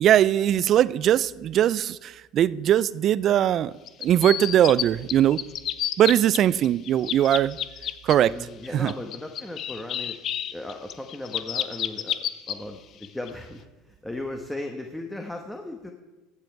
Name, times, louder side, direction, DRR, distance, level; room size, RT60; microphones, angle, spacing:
voice 1, 0.0-3.7 4.0-5.4 6.0-7.6 8.0-8.3 8.7-8.9, right 11 dB, 50° right, 19 dB, 0.4 m, -20 dB
sound 1, 3.9-4.8 5.1-6.4 6.6-8.2 8.6-12.5 13.0-13.3, left 10 dB, 50° left, 0.6 m, -30 dB
voice 2, 8.2-10.2 10.5-12.1 12.5-15.9, left 1 dB, 10° left, 3 dB, 1.1 m, -36 dB
15.0 x 7.6 x 4.6 m, 1.1 s
supercardioid pair, 90°, 0 cm